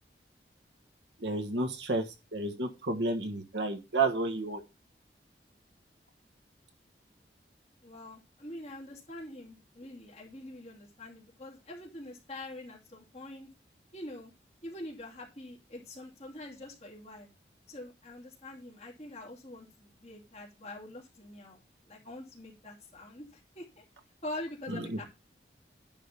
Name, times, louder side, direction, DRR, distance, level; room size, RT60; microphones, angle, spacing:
voice 1, 1.2-2.0 2.3-4.6 24.7-25.0, right 3 dB, 85° right, 5 dB, 1.5 m, -31 dB
voice 2, 7.8-13.5 13.9-14.3 14.6-17.3 17.7-21.6 21.9-23.8 24.2-25.0, left 1 dB, 35° left, -3 dB, 2.7 m, -45 dB
10.5 x 3.6 x 6.8 m, 0.27 s
head